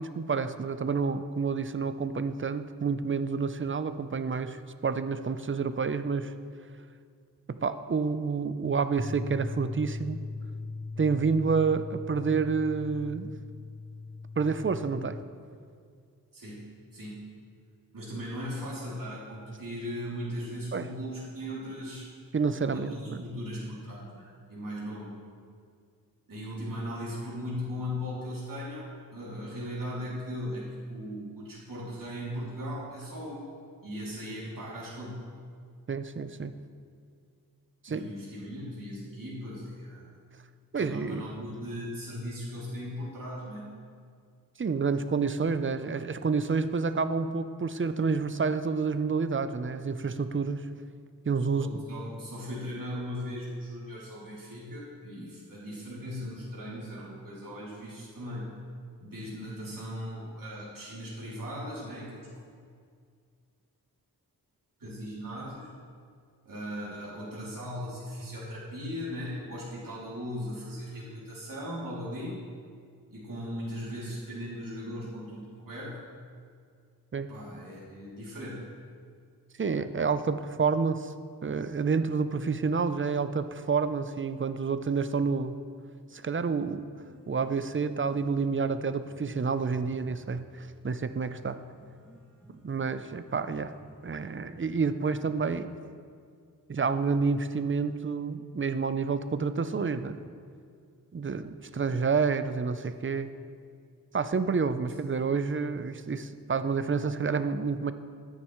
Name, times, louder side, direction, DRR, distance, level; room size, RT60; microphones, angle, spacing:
voice 1, 0.0-6.3 7.5-10.2 11.0-13.3 14.4-15.2 20.7-20.9 22.3-23.2 35.9-36.6 37.8-38.1 40.7-41.3 44.6-50.7 51.3-51.8 77.1-77.3 79.6-81.1 81.4-85.6 86.1-86.8 87.3-91.6 92.6-93.7 94.0-95.7 96.7-100.2 101.1-103.3 104.1-107.9, right 5 dB, 35° right, 11 dB, 0.5 m, -29 dB
sound 1, 9.0-15.2, left 3 dB, 20° left, 0.5 m, -40 dB
voice 2, 16.9-17.2 17.9-22.1 22.7-25.2 26.3-33.4 33.8-35.2 37.9-40.1 40.7-43.7 51.5-58.5 59.0-62.2 64.8-65.7 66.4-72.4 73.1-76.0 77.3-78.7, equal, 60° right, -8 dB, 2.8 m, -38 dB
Piano, 86.8-94.8, equal, 5° left, 2.1 m, -56 dB
13.5 x 9.6 x 3.1 m, 2.2 s
wide cardioid pair, 60°, 37 cm